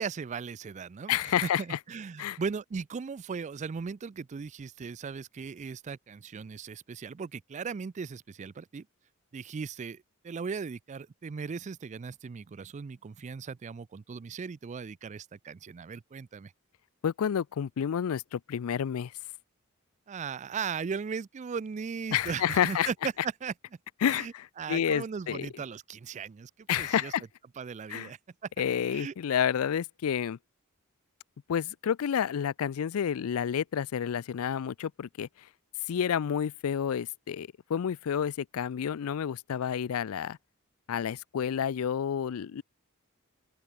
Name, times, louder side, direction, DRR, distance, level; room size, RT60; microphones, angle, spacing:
voice 1, 0.0-8.9 9.3-16.5 20.1-23.5 24.1-27.1 27.6-28.2 28.9-29.1, right 5 dB, 35° right, 0.3 m, -37 dB
voice 2, 1.1-1.8 2.2-2.4 17.0-19.1 22.1-22.9 24.0-25.5 26.7-27.2 27.9-28.1 28.6-30.4 31.5-35.3 35.9-40.4 40.9-42.6, left 8 dB, 70° left, 0.4 m, -29 dB
open air
head